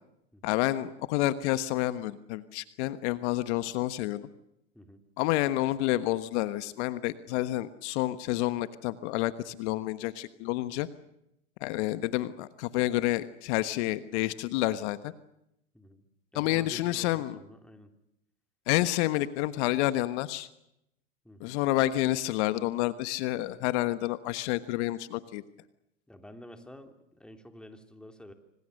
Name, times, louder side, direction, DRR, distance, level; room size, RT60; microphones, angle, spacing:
voice 1, 0.4-4.2 5.2-10.9 11.6-15.1 16.3-17.4 18.7-20.5 21.4-25.4, left 16 dB, 60° left, 12 dB, 1.4 m, -29 dB
voice 2, 16.3-17.9 21.2-21.6 26.1-28.3, left 1 dB, ahead, 6 dB, 3.2 m, -49 dB
26.5 x 26.0 x 6.6 m, 0.82 s
hypercardioid pair, 115°, 39 cm